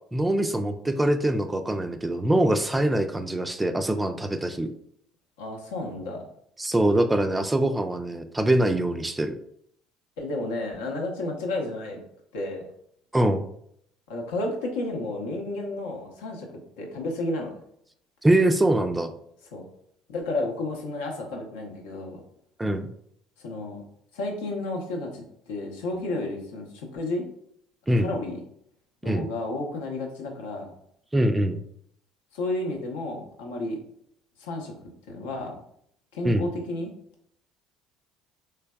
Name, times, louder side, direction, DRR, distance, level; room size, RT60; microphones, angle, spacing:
voice 1, 0.1-4.7 6.6-9.4 13.1-13.5 18.2-19.1 22.6-22.9 27.9-28.1 29.0-29.3 31.1-31.6 36.2-36.5, right 1 dB, 15° right, 7 dB, 0.3 m, -23 dB
voice 2, 5.4-6.2 10.2-12.0 12.3-12.6 14.1-17.6 19.5-19.6 20.1-22.2 23.4-23.8 24.1-27.3 27.9-28.4 29.0-30.7 32.3-33.8 34.4-34.7 35.1-35.6 36.1-36.9, left 2 dB, 80° left, 0 dB, 0.7 m, -32 dB
3.3 x 3.2 x 2.2 m, 0.70 s
hypercardioid pair, 70°, 0 cm